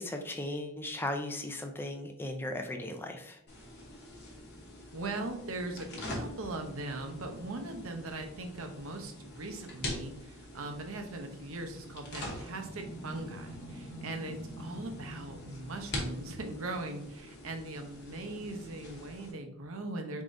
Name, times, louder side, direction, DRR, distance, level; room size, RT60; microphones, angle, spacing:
voice 1, 0.0-3.4, left 1 dB, 10° left, 4 dB, 0.4 m, -37 dB
sound 1, 3.5-19.3, left 1 dB, 45° left, 1.0 m, -44 dB
voice 2, 4.9-20.2, right 2 dB, 65° right, 5 dB, 0.7 m, -40 dB
4.5 x 3.6 x 2.6 m, 0.77 s
head